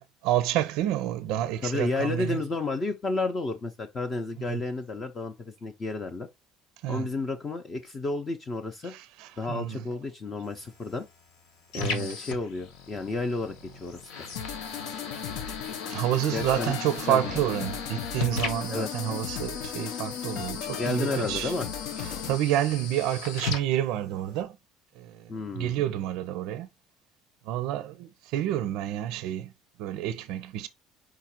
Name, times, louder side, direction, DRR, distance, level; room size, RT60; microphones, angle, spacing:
voice 1, 0.2-2.4 4.4-4.6 6.8-7.1 8.8-9.8 11.7-12.2 15.9-21.5 22.0-24.6 25.0-25.3 25.5-26.7 27.4-29.5 29.8-30.7, right 12 dB, 70° right, 0.4 m, -29 dB
voice 2, 1.6-6.3 6.9-8.9 9.4-11.0 11.7-14.3 16.3-16.7 17.1-17.4 18.7-18.9 20.7-21.7 25.3-25.8, left 3 dB, 25° left, 0.5 m, -31 dB
sound 1, 10.4-24.4, left 4 dB, 85° left, 1.2 m, -39 dB
sound 2, 14.4-22.4, left 8 dB, 65° left, 0.6 m, -36 dB
4.8 x 2.5 x 4.3 m
cardioid pair, 165°, 0 cm